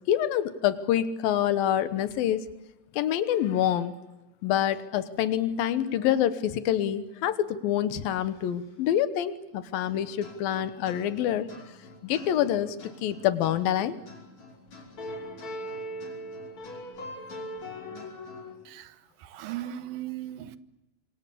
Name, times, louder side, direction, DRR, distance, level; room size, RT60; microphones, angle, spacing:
voice 1, 0.1-2.5 2.9-3.9 4.4-11.5 12.0-14.0 17.9-18.1, left 11 dB, 85° left, 2.9 m, -26 dB
sound 1, 9.8-18.5, equal, 50° left, 6.8 m, -41 dB
voice 2, 18.7-20.6, right 12 dB, 80° right, 2.8 m, -38 dB
26.0 x 25.0 x 8.5 m
omnidirectional pair, 4.1 m